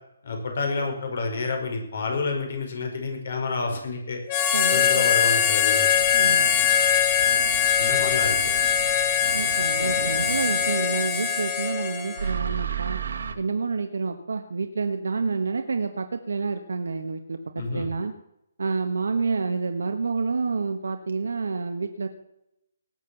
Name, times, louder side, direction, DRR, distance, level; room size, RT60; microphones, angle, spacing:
voice 1, 0.2-4.2 4.7-5.9 7.8-8.5 17.6-17.9, left 4 dB, 60° left, 3 dB, 5.3 m, -29 dB
Harmonica, 4.3-12.3, left 8 dB, 30° left, 2.2 m, -22 dB
voice 2, 4.5-5.1 6.1-6.5 9.3-13.0 13.3-18.1 18.6-22.1, right 4 dB, 85° right, 6 dB, 1.4 m, -28 dB
sound 1, 5.9-11.7 12.1-13.3, right 7 dB, 70° right, 1.8 m, -34 dB
19.0 x 7.6 x 7.1 m, 0.80 s
hypercardioid pair, 165°, 0 cm